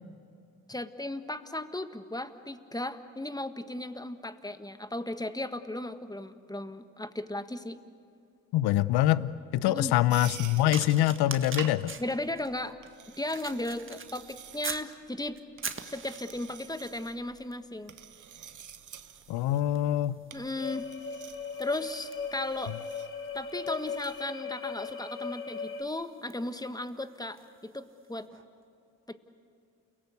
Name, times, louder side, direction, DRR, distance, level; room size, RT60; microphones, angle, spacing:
voice 1, 0.7-7.8 9.7-9.9 12.0-12.8 13.2-15.4 15.8-17.9 20.3-20.9 21.6-22.8 23.3-28.3 29.1-29.2, left 1 dB, 10° left, 10 dB, 1.6 m, -36 dB
voice 2, 8.5-11.9 19.3-20.2, left 13 dB, 75° left, 18 dB, 0.7 m, -25 dB
sound 1, 10.1-24.2, right 8 dB, 45° right, 1.2 m, -49 dB
sound 2, 10.7-14.9 15.4-16.6 17.4-17.6 17.9-27.6 28.3-28.4, right 5 dB, 30° right, 1.7 m, -44 dB
sound 3, 20.6-25.8, left 5 dB, 30° left, 4.2 m, -38 dB
29.5 x 18.0 x 8.2 m, 2.5 s
hypercardioid pair, 50°, 40 cm